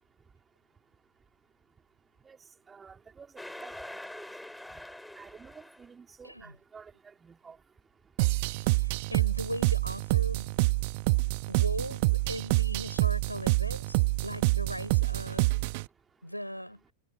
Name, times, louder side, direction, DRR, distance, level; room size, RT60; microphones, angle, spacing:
voice 1, 2.7-3.3 3.6-4.0 4.7-4.8 5.2-6.9 7.2-7.6, right 5 dB, 15° right, 3.9 m, -51 dB
sound 1, 3.4-5.9, left 1 dB, 5° left, 6.7 m, -44 dB
sound 2, 8.2-15.9, right 24 dB, 50° right, 1.2 m, -27 dB
voice 2, 8.6-10.7 11.5-15.6 16.2-16.8, equal, 90° left, 5.2 m, -38 dB
figure-of-eight pair, 90°, 0 cm